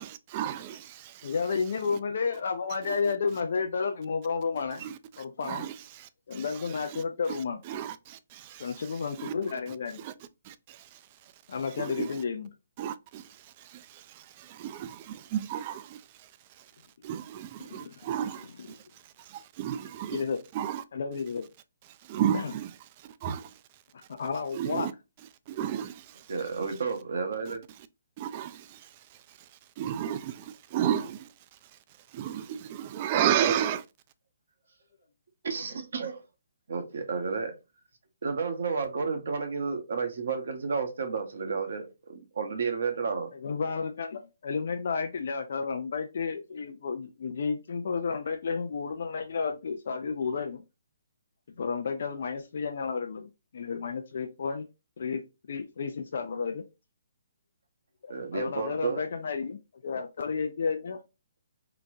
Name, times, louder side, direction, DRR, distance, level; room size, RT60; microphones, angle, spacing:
voice 1, 0.0-0.8 2.9-3.1 4.8-9.3 9.7-10.1 10.5-10.8 11.7-12.2 12.8-13.3 13.6-16.0 17.0-18.8 19.3-20.2 20.5-20.8 22.1-22.7 23.2-23.5 24.5-24.9 25.5-26.1 28.2-28.9 29.8-31.3 32.1-33.8, right 10 dB, 35° right, 0.3 m, -33 dB
voice 2, 1.2-4.9 5.2-5.7 6.3-7.6 8.6-10.0 11.5-12.5 17.6-18.0 20.1-20.4 20.9-21.5 22.3-22.5 24.1-24.9 43.3-50.6 51.6-54.7 55.0-55.2 55.5-56.6 58.0-61.0, left 5 dB, 55° left, 0.4 m, -32 dB
voice 3, 26.3-27.6 35.4-36.2 36.7-37.5 38.2-43.3 58.1-59.0, right 5 dB, 65° right, 0.8 m, -31 dB
3.9 x 2.2 x 2.6 m
figure-of-eight pair, 135°, 0 cm